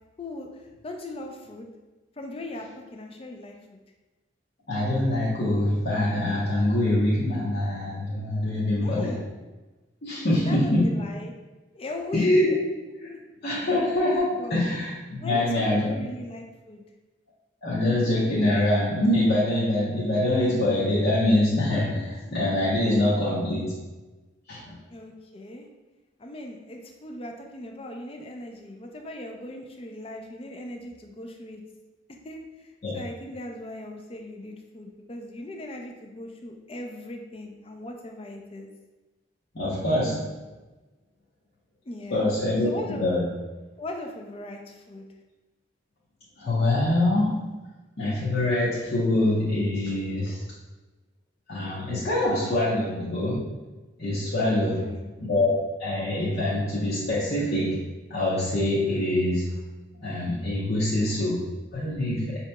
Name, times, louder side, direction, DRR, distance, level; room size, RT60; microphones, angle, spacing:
voice 1, 0.2-1.7 2.2-2.7 2.9-3.8 8.8-9.3 10.3-11.3 11.7-12.3 14.4-14.6 15.2-16.8 24.9-25.7 26.2-31.6 32.2-38.7 41.9-42.2 42.6-43.0 43.8-45.1 54.6-55.2, left 1 dB, 30° left, 3 dB, 0.4 m, -39 dB
voice 2, 4.7-9.1 10.0-10.9 12.1-12.5 13.0-13.1 13.4-15.9 17.6-23.8 24.5-24.6 32.8-33.0 39.5-40.4 42.1-43.3 46.4-47.5 48.0-50.4 51.5-53.5 54.0-54.8 55.2-55.5 55.8-57.8 58.1-59.6 60.0-62.4, left 1 dB, 55° left, -9 dB, 0.8 m, -24 dB
5.7 x 2.9 x 2.2 m, 1.2 s
head